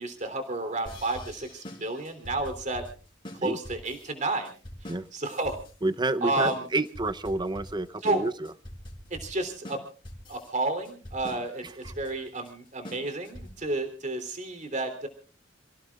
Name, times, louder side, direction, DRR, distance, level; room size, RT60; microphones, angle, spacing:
voice 1, 0.0-2.8 3.4-4.5 5.1-5.6 6.2-6.6 8.0-8.2 9.1-9.8 10.3-15.1, right 2 dB, 40° right, 7 dB, 3.4 m, -31 dB
sound 1, 0.9-13.7, left 1 dB, 25° left, 4.9 m, -44 dB
voice 2, 5.8-8.5 11.6-11.9, right 2 dB, 25° right, 11 dB, 0.8 m, -29 dB
29.0 x 17.0 x 2.4 m, 0.38 s
head